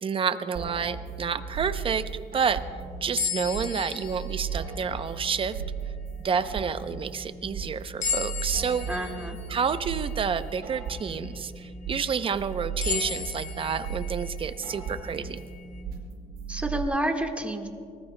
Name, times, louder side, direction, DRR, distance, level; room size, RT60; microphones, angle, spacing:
voice 1, 0.0-2.0 2.3-2.6 3.0-5.6 6.2-8.9 9.5-15.4, right 6 dB, 30° right, 11 dB, 0.7 m, -29 dB
sound 1, 0.5-16.8, right 6 dB, 65° right, 4.5 m, -36 dB
sound 2, 3.2-5.5 6.1-6.2 8.0-11.4 11.9-12.0 12.8-15.8, left 7 dB, 45° left, 1.1 m, -36 dB
voice 2, 8.9-9.4 16.5-17.7, right 1 dB, 5° right, 3 dB, 1.5 m, -29 dB
23.5 x 19.5 x 2.2 m, 2.3 s
cardioid pair, 110°, 17 cm